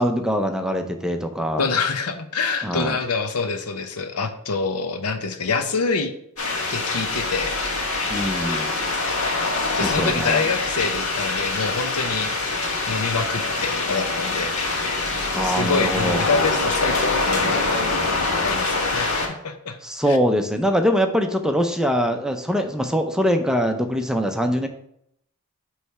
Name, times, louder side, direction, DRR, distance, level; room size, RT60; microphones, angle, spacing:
voice 1, 0.0-1.7 2.6-3.0 8.1-8.7 9.8-10.4 15.3-16.2 19.8-24.7, equal, 5° right, 5 dB, 0.5 m, -23 dB
voice 2, 1.6-6.1 6.7-7.6 9.7-12.4 12.9-14.5 15.4-17.8 18.4-19.8 20.1-20.2, left 4 dB, 90° left, 7 dB, 0.8 m, -26 dB
sound 1, 6.4-19.3, left 3 dB, 70° left, 1.8 m, -24 dB
8.3 x 3.2 x 4.7 m, 0.73 s
head